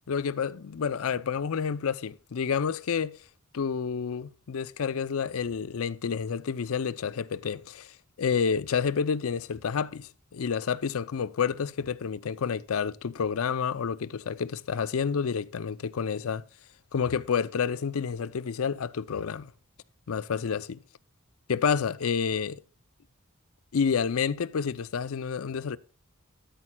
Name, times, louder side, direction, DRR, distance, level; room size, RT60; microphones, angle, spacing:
voice 1, 0.1-3.2 3.5-7.9 8.2-16.4 16.9-19.5 20.1-20.8 21.5-22.6 23.7-25.8, left 6 dB, 75° left, 0.5 m, -29 dB
12.5 x 8.9 x 2.2 m
head